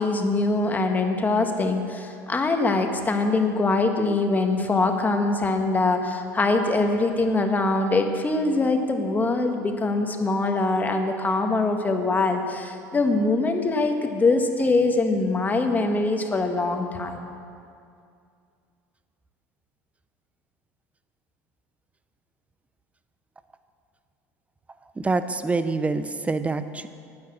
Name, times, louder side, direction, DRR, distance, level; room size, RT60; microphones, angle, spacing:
voice 1, 0.0-17.3, left 3 dB, 20° left, 5 dB, 1.4 m, -23 dB
voice 2, 25.0-26.9, right 3 dB, 15° right, 11 dB, 0.7 m, -26 dB
10.5 x 9.5 x 7.6 m, 2.4 s
supercardioid pair, 90°, 8 cm